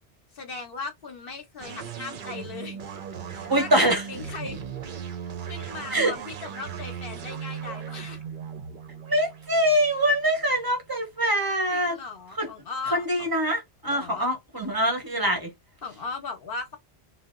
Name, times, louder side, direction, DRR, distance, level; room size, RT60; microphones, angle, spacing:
voice 1, 0.3-2.8 3.3-4.6 5.4-8.2 11.7-13.3 13.8-14.3 15.8-16.8, left 4 dB, 60° left, 0.9 m, -37 dB
sound 1, 1.6-11.0, right 7 dB, 55° right, 0.7 m, -38 dB
voice 2, 3.5-4.0 5.9-6.1 9.1-12.0 12.4-12.5 12.9-15.5, right 1 dB, 20° right, 0.9 m, -24 dB
2.7 x 2.1 x 3.6 m
omnidirectional pair, 1.1 m